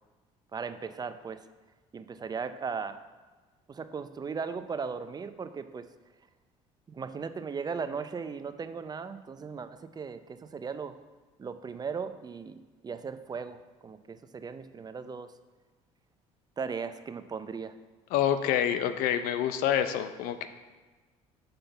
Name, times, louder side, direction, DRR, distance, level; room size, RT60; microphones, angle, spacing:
voice 1, 0.5-1.4 1.9-3.0 3.7-5.9 6.9-10.9 11.4-15.3 16.6-17.7, right 5 dB, 30° right, 10 dB, 0.5 m, -37 dB
voice 2, 18.1-20.5, left 10 dB, 80° left, 10 dB, 0.6 m, -27 dB
5.7 x 5.2 x 6.7 m, 1.3 s
supercardioid pair, 85°, 14 cm